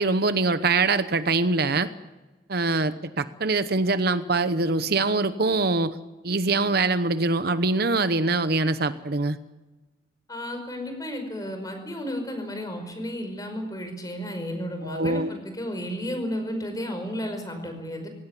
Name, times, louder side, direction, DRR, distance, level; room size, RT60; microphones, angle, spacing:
voice 1, 0.0-1.9 2.5-6.0 6.2-9.4 14.8-15.3, right 3 dB, 55° right, 12 dB, 0.9 m, -23 dB
voice 2, 10.3-18.1, equal, 20° left, 6 dB, 5.4 m, -33 dB
21.5 x 18.0 x 10.0 m, 1.2 s
head